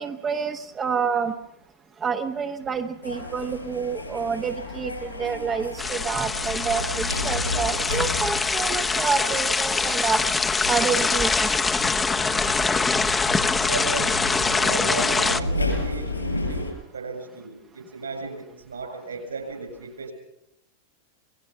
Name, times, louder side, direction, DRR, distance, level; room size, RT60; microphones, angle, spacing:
voice 1, 0.0-1.3 2.0-10.2 10.7-11.5, right 6 dB, 20° right, 6 dB, 1.0 m, -28 dB
sound 1, 3.0-16.7, left 2 dB, 85° left, 5.7 m, -33 dB
sound 2, 5.8-15.4, left 4 dB, 15° left, 0.9 m, -24 dB
voice 2, 13.6-20.1, right 4 dB, 75° right, 6 dB, 7.1 m, -35 dB
27.0 x 19.5 x 5.7 m, 0.81 s
figure-of-eight pair, 90°, 0 cm